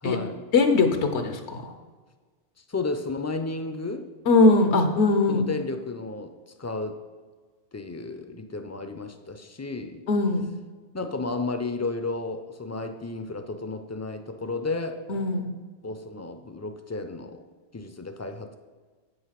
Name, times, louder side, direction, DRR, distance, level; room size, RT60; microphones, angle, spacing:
voice 1, 0.0-0.4 2.6-4.1 5.3-7.0 7.7-10.0 10.9-15.0 15.8-17.4 17.7-18.6, left 3 dB, 25° left, 8 dB, 0.3 m, -33 dB
voice 2, 0.5-1.7 4.3-5.4 10.1-10.5 15.1-15.5, left 3 dB, 85° left, 7 dB, 1.2 m, -21 dB
8.1 x 5.5 x 5.8 m, 1.4 s
omnidirectional pair, 1.1 m